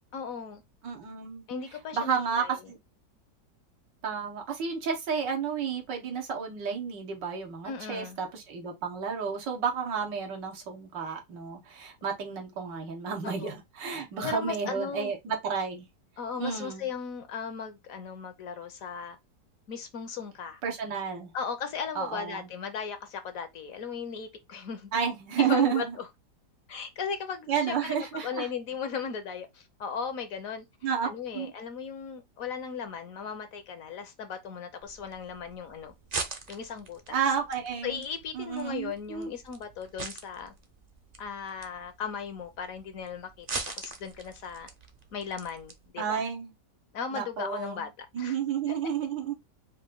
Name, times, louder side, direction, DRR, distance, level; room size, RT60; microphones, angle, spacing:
voice 1, 0.1-0.6 1.5-2.6 7.6-8.2 13.2-13.5 13.9-15.1 16.2-19.2 19.7-20.6 21.3-24.9 25.4-26.1 26.7-27.8 28.1-30.7 31.0-35.9 36.5-37.2 37.8-40.5 41.2-43.5 43.8-44.7 45.1-46.2 46.9-48.4 48.7-48.8, left 6 dB, 60° left, 1.0 m, -37 dB
voice 2, 0.8-1.4 1.9-2.8 4.0-15.9 16.4-16.9 20.6-21.3 22.0-22.5 24.9-26.0 27.5-28.5 30.8-31.1 31.3-31.5 37.1-38.0 38.3-39.3 46.0-46.5 47.1-47.9 48.1-49.3, right 7 dB, 90° right, 1.9 m, -31 dB
sound 1, 34.8-45.9, right 4 dB, 45° right, 0.5 m, -42 dB
5.2 x 2.6 x 3.7 m
omnidirectional pair, 1.9 m